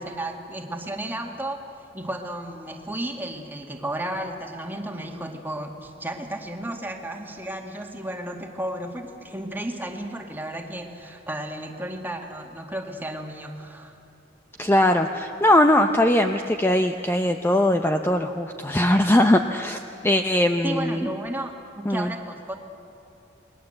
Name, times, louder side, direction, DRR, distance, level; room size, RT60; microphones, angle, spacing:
voice 1, 0.0-1.6 1.9-13.9 20.6-22.6, right 1 dB, 10° right, 2 dB, 2.1 m, -33 dB
voice 2, 14.6-21.1 21.9-22.1, left 1 dB, 10° left, 6 dB, 0.7 m, -20 dB
28.5 x 21.0 x 7.9 m, 2.8 s
head